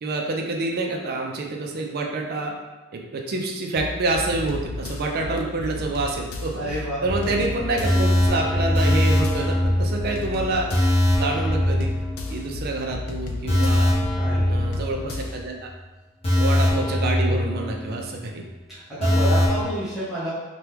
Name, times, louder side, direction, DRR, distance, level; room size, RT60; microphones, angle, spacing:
voice 1, 0.0-2.5 2.9-10.7 11.2-11.9 12.3-13.9 14.5-15.7 16.4-18.4, right 2 dB, 50° right, 1 dB, 0.4 m, -27 dB
sound 1, 3.8-15.5, left 2 dB, 80° left, 0.4 m, -34 dB
voice 2, 6.6-7.0 14.1-14.5 19.0-20.3, equal, ahead, -13 dB, 0.8 m, -28 dB
sound 2, 7.1-12.6 12.9-13.0 13.5-15.4 15.7-15.8 16.2-18.2 18.5-18.6 19.0-19.6, left 1 dB, 30° left, 0.8 m, -22 dB
2.9 x 2.2 x 3.3 m, 1.1 s
head